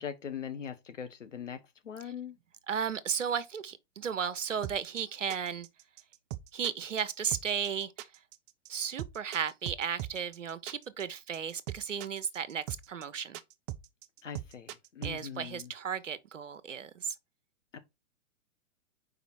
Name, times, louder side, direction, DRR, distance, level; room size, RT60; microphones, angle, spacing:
voice 1, 0.0-1.6 1.8-2.4 14.2-15.7 17.7-17.8, left 8 dB, 80° left, 1.5 m, -41 dB
voice 2, 2.7-5.7 6.5-8.1 8.7-13.4 15.0-17.1, right 7 dB, 80° right, 1.0 m, -34 dB
sound 1, 4.6-15.2, right 13 dB, 25° right, 0.5 m, -41 dB
5.0 x 5.0 x 4.7 m
hypercardioid pair, 115°, 37 cm